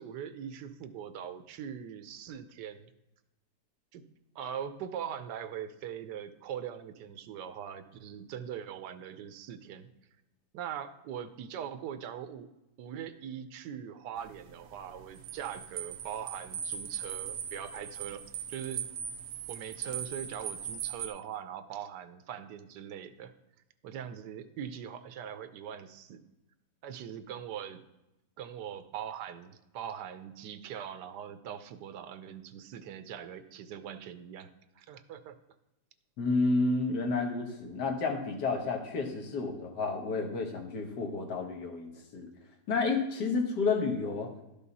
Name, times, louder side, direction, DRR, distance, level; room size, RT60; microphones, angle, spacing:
voice 1, 0.0-2.9 3.9-4.0 4.3-9.9 10.5-12.5 12.8-18.8 19.5-23.3 23.8-26.2 26.8-27.8 28.4-35.4, right 9 dB, 85° right, 11 dB, 1.3 m, -41 dB
sound 1, 14.2-21.1, right 8 dB, 65° right, 1.1 m, -39 dB
voice 2, 36.2-42.3 42.7-44.3, left 3 dB, 80° left, 2 dB, 1.9 m, -30 dB
12.0 x 5.5 x 4.1 m, 0.94 s
omnidirectional pair, 1.8 m